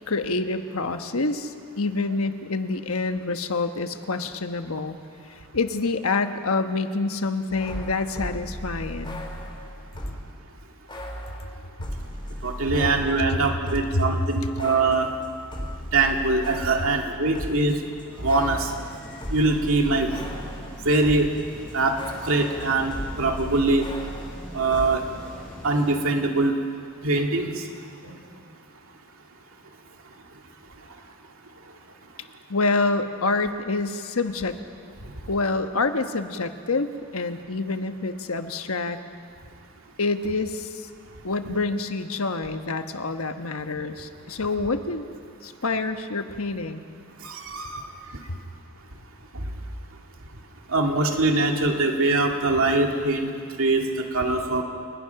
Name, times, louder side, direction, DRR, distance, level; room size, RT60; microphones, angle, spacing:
voice 1, 0.1-5.0 5.5-9.2 13.2-13.3 13.9-14.1 14.4-14.5 32.5-34.6 35.3-39.0 40.0-40.9 41.2-45.0 45.4-46.9, left 3 dB, 75° left, 8 dB, 1.2 m, -27 dB
sound 1, 7.5-10.3 10.9-14.0 14.3-21.4 21.7-24.9, equal, 20° left, 3.1 m, -36 dB
voice 2, 12.4-15.1 15.9-17.7 18.2-18.7 19.3-20.1 20.8-21.3 21.7-23.9 24.5-25.0 25.6-26.6 27.0-27.6 28.0-28.1 47.2-47.9 49.3-49.4 50.7-53.3 53.6-54.6, right 3 dB, 65° right, 2 dB, 2.5 m, -23 dB
sound 2, 18.1-26.0, equal, 5° left, 6.8 m, -43 dB
28.5 x 20.5 x 5.9 m, 2.2 s
head